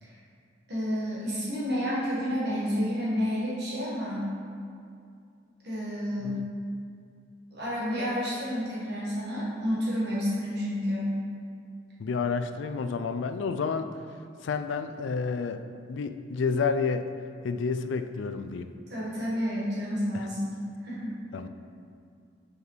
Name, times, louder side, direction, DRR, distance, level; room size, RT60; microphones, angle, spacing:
voice 1, 0.7-4.3 5.6-6.4 7.5-11.1 18.9-20.6 20.8-21.2, equal, 60° right, -7 dB, 1.5 m, -30 dB
voice 2, 12.0-13.9 14.4-15.6 15.9-17.1 17.4-18.8 20.1-20.3 21.3-21.5, left 5 dB, 70° left, 9 dB, 0.3 m, -30 dB
7.2 x 4.8 x 3.2 m, 2.4 s
head